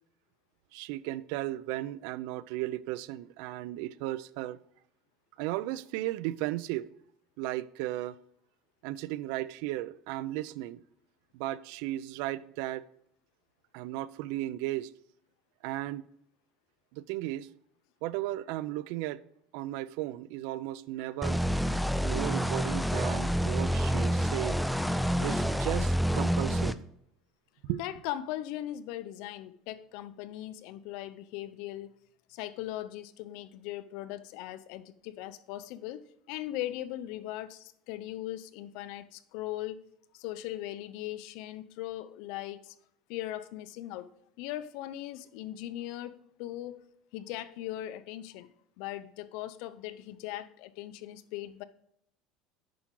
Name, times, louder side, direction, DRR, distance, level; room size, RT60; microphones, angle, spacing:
voice 1, 0.7-4.6 5.4-6.9 7.4-8.2 8.8-10.8 11.3-12.9 13.7-14.9 15.6-16.1 16.9-17.5 18.0-19.2 19.5-21.4 22.0-24.7 25.2-26.8 27.6-27.8, right 15 dB, 75° right, 0.4 m, -35 dB
sound 1, 21.2-26.7, equal, ahead, 0.4 m, -28 dB
voice 2, 27.8-31.9 32.3-39.8 40.1-42.8 43.1-44.1 44.4-46.8 47.1-48.5 48.8-51.6, left 14 dB, 70° left, 0.6 m, -39 dB
8.5 x 5.9 x 3.8 m
cardioid pair, 130°, 0 cm